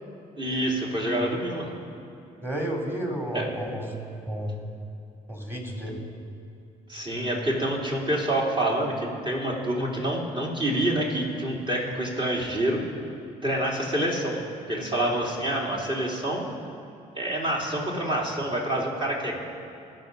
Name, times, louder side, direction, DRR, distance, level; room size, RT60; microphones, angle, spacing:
voice 1, 0.4-1.7 3.3-3.5 6.9-12.8 13.4-14.4 14.7-16.4 17.2-19.4, right 1 dB, 30° right, -2 dB, 3.5 m, -27 dB
voice 2, 2.4-3.9 4.3-4.6 5.3-6.0, right 1 dB, 15° right, 0 dB, 3.6 m, -31 dB
20.0 x 6.8 x 5.6 m, 2.7 s
supercardioid pair, 65°, 16 cm